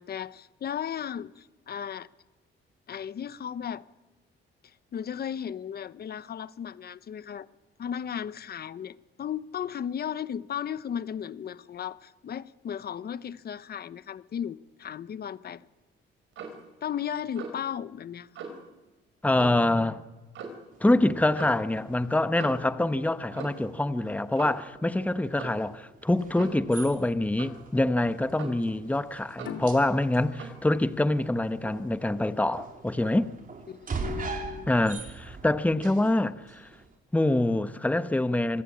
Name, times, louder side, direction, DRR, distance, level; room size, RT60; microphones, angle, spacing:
voice 1, 0.0-2.1 2.9-3.8 4.6-7.5 7.8-15.7 16.8-18.3 33.7-34.9, left 8 dB, 50° left, 1.0 m, -35 dB
Clock, 16.3-16.6 17.4-17.7 18.3-18.6 19.3-19.7 20.3-20.7 21.3-21.6 22.3-22.7 23.3-23.7 24.3-24.7 25.4-25.6 26.3-26.6 27.4-27.6 28.4-28.7 29.4-29.6 30.4-30.6, right 5 dB, 80° right, 5.0 m, -40 dB
voice 2, 19.2-20.0 20.8-33.3 34.7-36.7 37.1-38.6, left 1 dB, 5° left, 1.1 m, -25 dB
sound 1, 20.7-37.0, right 4 dB, 45° right, 4.1 m, -43 dB
sound 2, 29.4-32.6, left 8 dB, 75° left, 2.4 m, -44 dB
26.5 x 18.0 x 8.6 m
cardioid pair, 90°, 20 cm